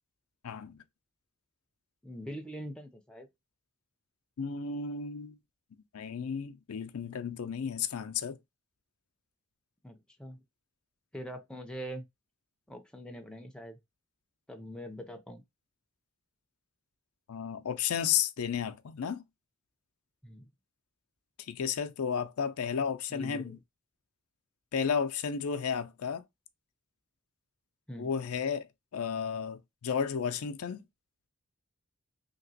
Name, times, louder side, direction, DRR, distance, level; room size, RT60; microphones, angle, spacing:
voice 1, 0.4-0.8 4.4-5.4 5.9-8.4 17.3-19.2 21.4-23.6 24.7-26.2 28.0-28.7 28.9-30.8, left 7 dB, 85° left, 0.4 m, -33 dB
voice 2, 2.0-3.3 9.8-10.4 11.1-12.1 12.7-13.8 14.5-15.4 20.2-20.5 23.1-23.6 27.9-28.1, equal, 5° left, 0.5 m, -43 dB
2.9 x 2.9 x 2.7 m
head